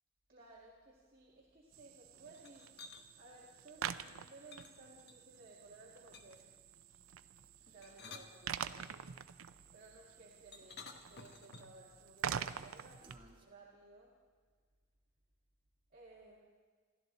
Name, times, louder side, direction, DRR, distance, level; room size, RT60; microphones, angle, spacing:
voice 1, 0.3-2.7 3.2-6.4 7.7-9.1 9.7-13.0 13.4-14.1 15.9-16.4, right 2 dB, 45° right, -5 dB, 2.2 m, -58 dB
sound 1, 1.7-13.2, right 8 dB, 85° right, 0.6 m, -46 dB
sound 2, 2.3-3.0 4.5-5.4 6.1-6.5 7.7-9.0 10.5-11.8, left 4 dB, 55° left, 1.1 m, -54 dB
sound 3, 6.0-13.5, right 1 dB, 25° right, 1.9 m, -69 dB
27.5 x 12.5 x 4.0 m, 1.5 s
head